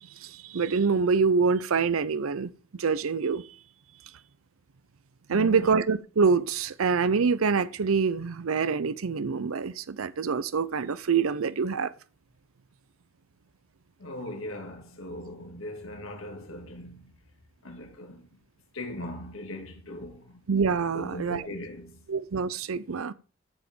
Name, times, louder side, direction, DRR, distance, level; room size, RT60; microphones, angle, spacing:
voice 1, 0.0-3.6 5.3-11.9 20.5-21.5 22.1-23.1, right 5 dB, 80° right, 0.6 m, -26 dB
voice 2, 5.3-5.7 14.0-17.1 17.6-18.3 18.7-20.4 20.9-22.0, left 1 dB, 70° left, 2.2 m, -39 dB
14.0 x 5.0 x 5.3 m
head